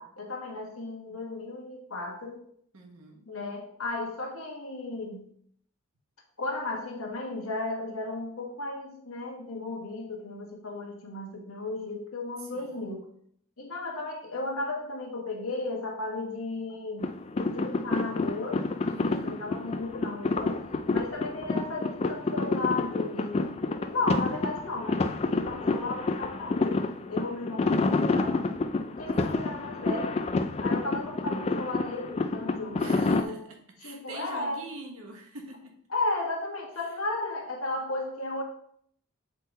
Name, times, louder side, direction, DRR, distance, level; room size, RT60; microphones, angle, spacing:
voice 1, 0.0-2.4 3.3-5.3 6.4-13.1 13.6-17.1 17.5-18.6 19.2-20.6 20.9-23.5 23.9-26.8 27.1-28.5 29.0-30.2 30.6-33.4 33.8-34.7 35.9-38.4, left 2 dB, 70° left, 1 dB, 1.4 m, -34 dB
voice 2, 2.7-3.3 12.4-12.8 18.9-19.4 29.1-29.4 32.8-35.7 36.7-37.0, right 2 dB, 75° right, 2 dB, 1.4 m, -45 dB
sound 1, 17.0-33.2, left 3 dB, 30° left, 0.3 m, -29 dB
7.5 x 3.7 x 4.1 m, 0.66 s
head